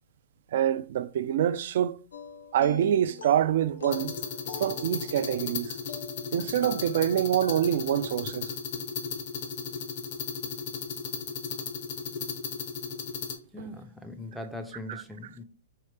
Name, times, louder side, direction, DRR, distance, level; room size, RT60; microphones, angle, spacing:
voice 1, 0.5-2.0 2.5-4.1 4.6-5.8 6.3-8.5 13.6-13.7 14.9-15.0, right 10 dB, 60° right, 0.3 m, -26 dB
sound 1, 2.1-8.0, left 4 dB, 80° left, 0.5 m, -43 dB
sound 2, 3.9-13.4, left 6 dB, 55° left, 0.8 m, -35 dB
voice 2, 13.5-15.4, left 1 dB, ahead, 0.4 m, -40 dB
4.4 x 2.8 x 3.3 m
hypercardioid pair, 135°, 0 cm